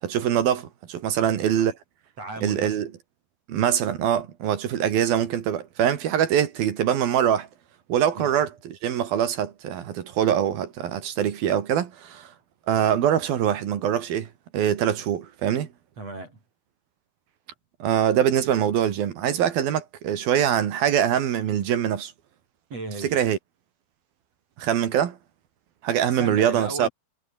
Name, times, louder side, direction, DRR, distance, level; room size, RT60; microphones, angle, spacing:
voice 1, 0.0-1.8 2.4-2.9 3.5-7.5 7.9-12.3 12.7-15.7 17.8-22.1 23.1-23.4 24.6-25.2 25.8-26.9, right 9 dB, 75° right, 3.9 m, -23 dB
voice 2, 1.2-1.7 2.2-2.9 8.1-8.4 16.0-16.4 22.7-23.2 26.1-26.9, right 2 dB, 40° right, 8.1 m, -36 dB
omnidirectional pair, 4.3 m